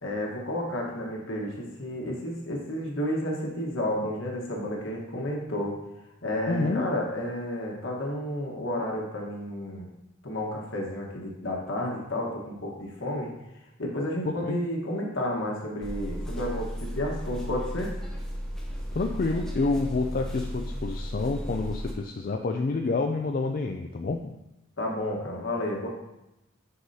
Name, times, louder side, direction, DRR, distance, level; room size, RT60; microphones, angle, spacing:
voice 1, 0.0-5.8 6.2-9.9 10.2-13.3 13.8-17.9 24.8-25.9, left 1 dB, 65° left, -1 dB, 1.4 m, -31 dB
voice 2, 6.5-6.9 14.2-14.6 18.9-24.3, left 3 dB, 40° left, 3 dB, 0.4 m, -28 dB
sound 1, 15.8-21.9, equal, 5° left, 0.7 m, -34 dB
9.7 x 4.8 x 2.8 m, 0.92 s
head